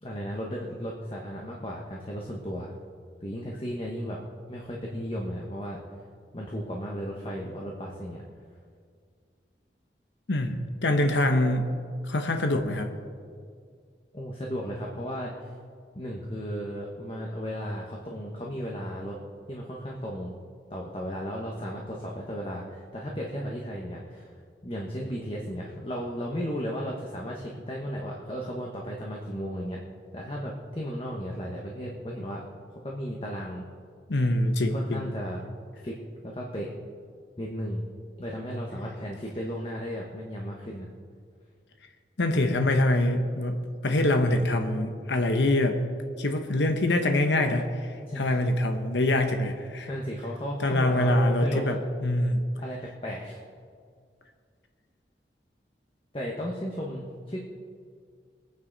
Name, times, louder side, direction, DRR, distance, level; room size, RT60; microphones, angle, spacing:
voice 1, 0.0-2.7 3.2-4.2 4.5-5.8 6.3-8.2 14.1-15.5 15.9-19.2 19.5-20.3 20.7-24.3 24.6-29.8 30.1-32.4 32.8-33.6 34.6-35.4 35.8-35.9 36.2-36.7 37.4-37.8 38.2-40.9 48.0-48.4 49.9-51.8 52.6-53.4 56.1-57.4, equal, 30° left, -2 dB, 1.2 m, -35 dB
voice 2, 10.3-11.7 12.0-12.9 34.1-35.1 42.2-45.8 46.2-49.9 50.6-52.4, left 1 dB, 85° left, 5 dB, 1.0 m, -25 dB
22.5 x 9.4 x 4.0 m, 2.1 s
head